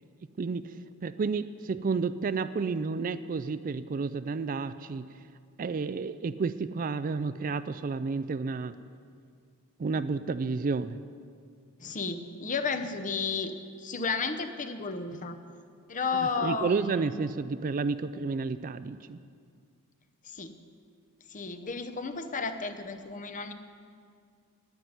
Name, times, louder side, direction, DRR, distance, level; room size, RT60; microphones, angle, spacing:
voice 1, 0.4-0.7 1.0-5.1 5.6-8.8 9.8-11.0 16.4-19.2, right 4 dB, 40° right, 13 dB, 0.3 m, -31 dB
voice 2, 11.8-15.4 15.9-17.2 20.2-20.6 21.3-23.5, left 4 dB, 35° left, 8 dB, 0.8 m, -33 dB
10.0 x 9.4 x 9.5 m, 2.2 s
head